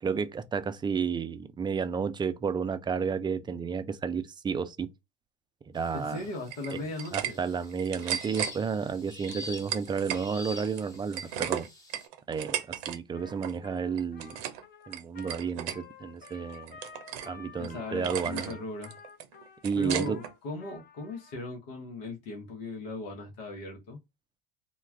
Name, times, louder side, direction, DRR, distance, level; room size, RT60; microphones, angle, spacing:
voice 1, 0.0-4.9 5.7-6.2 6.7-6.8 7.1-11.7 12.3-14.4 14.9-16.8 17.2-18.6 19.6-20.2, right 6 dB, 15° right, 0.3 m, -31 dB
sound 1, 5.8-12.1, left 2 dB, 10° left, 1.0 m, -47 dB
voice 2, 5.9-7.4 17.6-19.0 19.8-24.0, left 2 dB, 80° left, 1.0 m, -38 dB
sound 2, 6.5-7.3 7.6-8.5 9.2-10.2 10.6-13.0 13.2-13.6 13.9-14.6 14.9-15.8 16.2-17.3 17.6-17.7 18.0-18.5 18.8-20.3, right 10 dB, 70° right, 0.6 m, -35 dB
Trumpet, 13.1-21.4, left 6 dB, 35° left, 0.6 m, -51 dB
2.3 x 2.3 x 3.2 m
hypercardioid pair, 85°, 29 cm